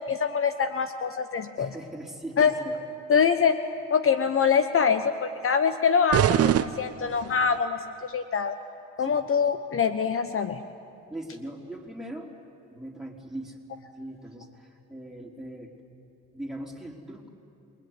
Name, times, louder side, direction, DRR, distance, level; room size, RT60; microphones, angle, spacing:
voice 1, 0.0-1.7 2.4-2.5 3.1-3.6 3.9-8.6 9.0-10.7, left 6 dB, 45° left, 9 dB, 1.1 m, -24 dB
voice 2, 1.6-2.8 9.0-9.2 11.1-12.3 12.7-13.6 14.0-15.7 16.3-17.3, right 1 dB, ahead, -1 dB, 4.2 m, -40 dB
sound 1, 6.1-7.6, right 11 dB, 50° right, 0.7 m, -24 dB
28.5 x 21.0 x 9.8 m, 2.7 s
cardioid pair, 90°, 30 cm